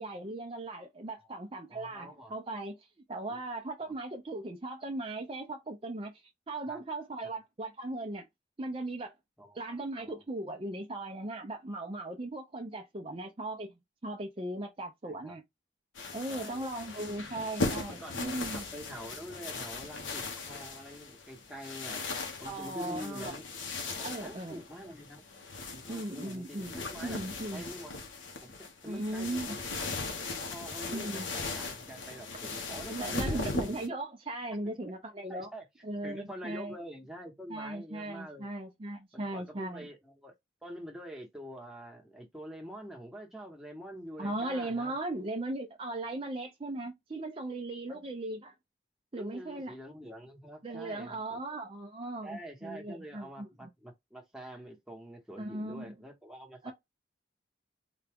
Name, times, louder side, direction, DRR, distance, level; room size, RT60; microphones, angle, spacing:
voice 1, 0.0-8.3 8.6-9.1 9.5-13.7 14.0-15.4 16.1-18.7 22.4-23.3 24.0-24.6 25.9-27.6 28.8-29.6 30.9-31.3 32.9-35.5 35.8-36.7 37.5-39.9 44.2-48.5 49.1-49.7 50.6-53.7 55.4-55.9 56.6-56.7, right 2 dB, 30° right, 0.5 m, -38 dB
voice 2, 1.7-2.3 3.3-3.4 6.7-6.8 7.2-7.4 9.4-10.2 15.0-15.4 16.3-16.7 17.0-17.1 17.9-22.1 22.4-23.5 24.0-25.3 25.7-27.2 27.5-27.9 28.4-29.7 30.4-33.7 34.6-34.8 35.3-35.6 36.0-38.5 39.1-40.3 40.6-44.9 47.9-48.0 49.2-51.4 52.2-56.7, equal, ahead, 1.0 m, -46 dB
sound 1, 15.9-33.9, left 3 dB, 85° left, 0.9 m, -38 dB
3.9 x 2.3 x 3.4 m
head